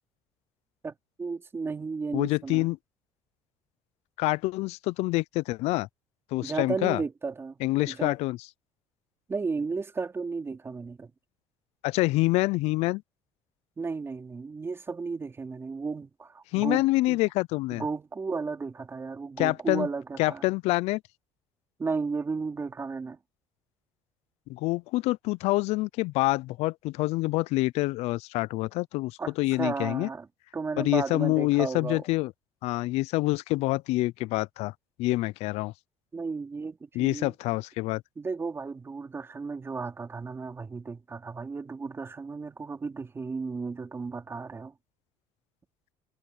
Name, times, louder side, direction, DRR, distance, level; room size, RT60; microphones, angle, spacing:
voice 1, 0.8-2.7 6.4-7.6 7.9-8.2 9.3-11.1 13.8-17.2 17.7-20.5 21.8-23.2 29.2-30.3 30.5-32.0 36.1-37.4 38.2-44.8, right 4 dB, 20° right, 3.5 m, -34 dB
voice 2, 2.1-2.8 4.2-5.9 6.3-7.0 7.6-8.4 11.8-13.0 16.5-17.8 19.4-19.9 20.2-21.0 24.5-30.1 30.8-32.3 32.6-34.7 35.0-35.7 37.0-38.0, left 20 dB, 75° left, 0.4 m, -26 dB
cardioid pair, 125°, 11 cm